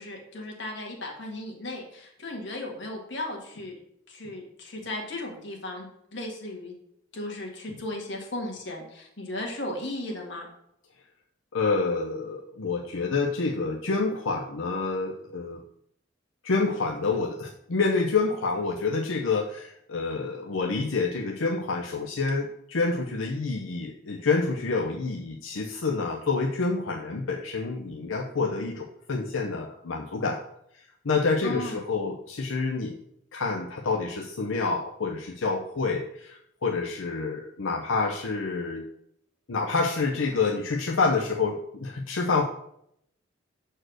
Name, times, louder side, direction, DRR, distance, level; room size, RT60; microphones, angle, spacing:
voice 1, 0.0-3.8 4.1-6.7 7.1-10.5 31.4-31.9, left 1 dB, 65° left, 0 dB, 1.8 m, -36 dB
voice 2, 11.5-15.6 16.4-30.4 31.0-33.0 33.3-38.8 39.5-42.5, left 4 dB, 90° left, 0 dB, 0.7 m, -28 dB
6.3 x 4.5 x 6.2 m, 0.74 s
head